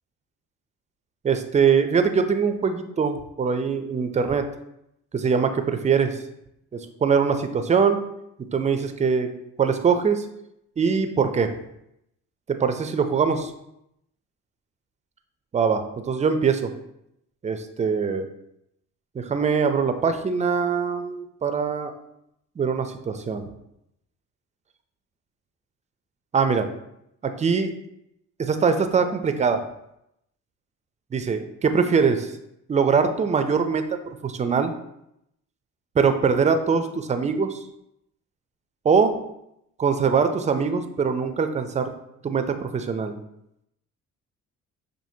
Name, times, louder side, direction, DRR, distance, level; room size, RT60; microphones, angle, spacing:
voice 1, 1.2-4.4 5.1-6.2 6.7-8.0 8.5-9.3 9.6-10.3 10.8-11.5 12.5-13.5 15.5-16.7 17.4-18.3 19.2-21.9 22.6-23.5 26.3-26.7 27.2-27.7 28.4-29.6 31.1-32.3 32.7-33.8 34.2-34.7 36.0-37.6 38.8-39.2 39.8-41.9 42.2-43.2, right 6 dB, 25° right, 8 dB, 0.4 m, -22 dB
5.8 x 2.6 x 2.7 m, 0.80 s
cardioid pair, 90°, 30 cm